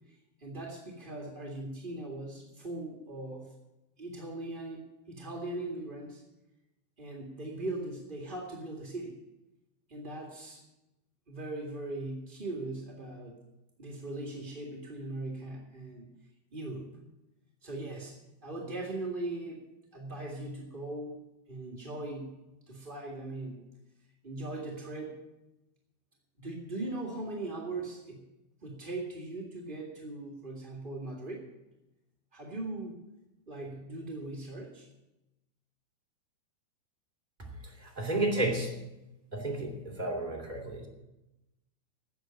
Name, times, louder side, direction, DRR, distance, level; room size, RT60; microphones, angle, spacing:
voice 1, 0.4-3.5 4.0-6.2 7.0-9.1 9.9-10.6 11.3-13.4 13.8-16.1 16.5-16.9 17.6-19.6 19.9-21.2 21.5-22.3 22.7-23.6 24.2-25.2 26.4-28.2 28.6-31.5 32.3-33.0 33.5-34.9, right 2 dB, 35° right, -1 dB, 0.8 m, -39 dB
voice 2, 37.4-38.7 39.3-40.9, right 2 dB, 15° right, 0 dB, 2.4 m, -32 dB
13.0 x 8.2 x 8.8 m, 0.94 s
omnidirectional pair, 4.6 m